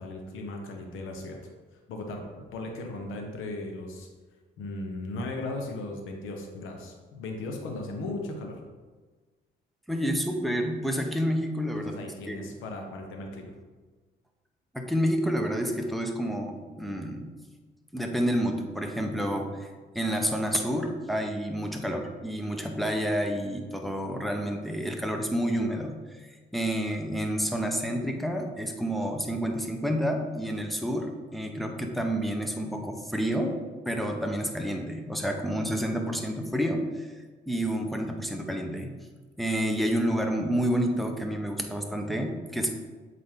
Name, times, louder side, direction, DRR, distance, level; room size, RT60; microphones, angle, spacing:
voice 1, 0.0-1.4 1.9-4.1 4.6-8.6 11.7-13.5, left 2 dB, 90° left, 2 dB, 1.1 m, -37 dB
voice 2, 9.9-12.0 12.3-12.4 14.7-17.3 17.9-19.7 19.9-33.6 33.9-37.2 37.5-38.9 39.4-42.7, equal, ahead, 3 dB, 0.9 m, -29 dB
7.6 x 4.0 x 3.7 m, 1.3 s
cardioid pair, 90°, 20 cm